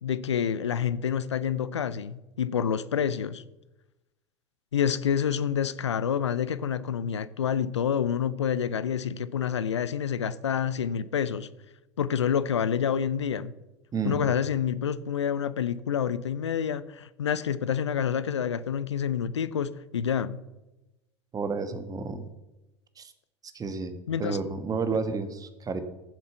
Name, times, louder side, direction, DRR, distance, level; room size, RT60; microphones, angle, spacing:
voice 1, 0.0-3.4 4.7-11.5 12.0-13.5 14.0-20.4 24.1-24.4 24.9-25.0, left 8 dB, 80° left, 16 dB, 0.6 m, -28 dB
voice 2, 13.9-14.3 21.3-22.3 23.0-23.1 23.5-25.8, right 4 dB, 25° right, 9 dB, 1.4 m, -31 dB
15.0 x 7.3 x 5.8 m, 0.99 s
figure-of-eight pair, 75°, 15 cm